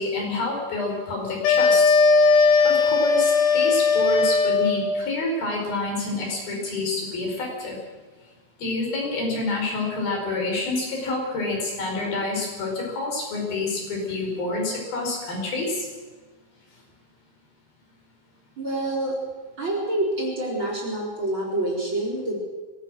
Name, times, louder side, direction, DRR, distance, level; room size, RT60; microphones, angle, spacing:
voice 1, 0.0-2.0 2.3-7.8 8.6-15.9, left 3 dB, 60° left, 0 dB, 6.8 m, -28 dB
sound 1, 1.4-4.9, left 4 dB, 80° left, 4.2 m, -18 dB
voice 2, 18.6-19.2 19.6-22.4, right 1 dB, 30° right, -2 dB, 4.9 m, -27 dB
22.5 x 18.5 x 6.4 m, 1.3 s
omnidirectional pair, 4.8 m